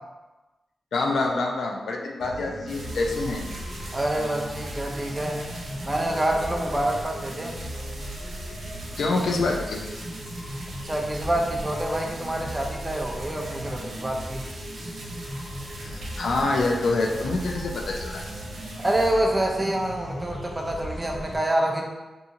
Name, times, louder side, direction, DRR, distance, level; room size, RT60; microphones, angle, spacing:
voice 1, 0.9-3.4 9.0-9.8 15.8-18.2, left 3 dB, 80° left, 1 dB, 0.4 m, -26 dB
sound 1, 2.2-21.4, equal, 60° left, 1.1 m, -37 dB
sound 2, 2.7-19.1, right 1 dB, 70° right, 0.6 m, -42 dB
voice 2, 3.9-5.4 5.9-7.6 10.8-14.5 18.8-21.9, right 1 dB, 15° right, 0 dB, 0.4 m, -26 dB
2.7 x 2.6 x 2.5 m, 1.1 s
wide cardioid pair, 120°, 0 cm